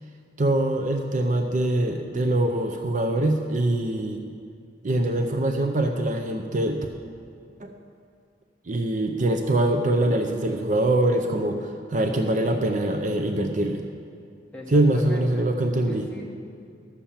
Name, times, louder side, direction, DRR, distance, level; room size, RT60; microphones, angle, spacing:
voice 1, 0.4-4.2 4.8-6.8 7.6-7.7 8.7-13.8 14.7-16.1, right 1 dB, 45° right, 5 dB, 0.6 m, -23 dB
voice 2, 14.5-15.5 15.9-16.3, left 1 dB, 5° left, -3 dB, 1.5 m, -38 dB
11.5 x 7.1 x 7.3 m, 2.3 s
head